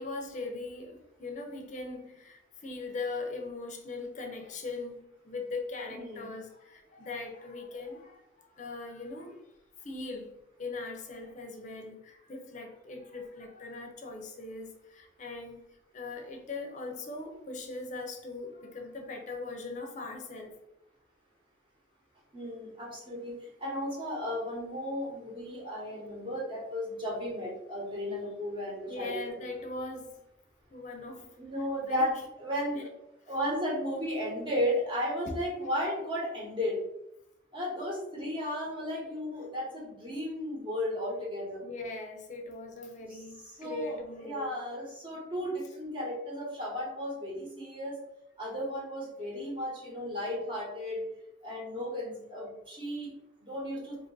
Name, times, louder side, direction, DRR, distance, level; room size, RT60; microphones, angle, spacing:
voice 1, 0.0-9.5 9.8-20.5 28.9-30.2 30.7-31.4 31.8-32.1 32.7-32.8 35.2-35.3 41.6-44.5, left 3 dB, 40° left, 0.6 m, -40 dB
voice 2, 5.9-6.3 22.3-29.2 31.4-32.9 33.3-36.8 37.5-41.6 43.1-43.2 43.6-48.0 48.4-51.0 51.4-53.1 53.4-54.0, equal, 30° right, 1.1 m, -34 dB
2.9 x 2.5 x 3.9 m
head